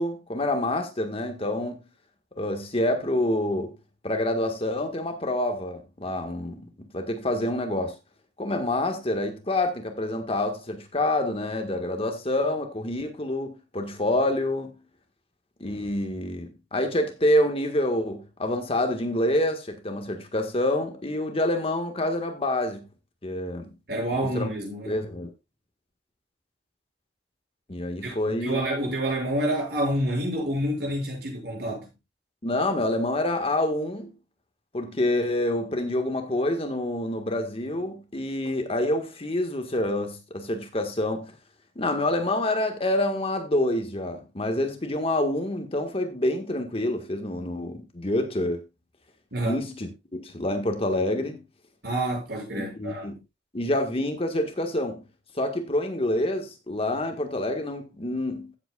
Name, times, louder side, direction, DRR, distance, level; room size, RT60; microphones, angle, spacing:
voice 1, 0.0-1.8 2.4-3.7 4.0-7.9 8.4-14.7 15.6-22.9 23.2-23.7 24.2-24.5 24.9-25.3 27.7-28.6 32.4-34.1 34.7-41.3 41.8-48.6 49.5-51.4 52.6-53.1 53.5-55.0 55.4-58.6, left 1 dB, 35° left, 1.7 m, -27 dB
voice 2, 23.9-25.0 28.0-31.9 49.3-49.6 51.8-53.1, right 1 dB, 65° right, 6.9 m, -28 dB
15.5 x 8.0 x 2.4 m
head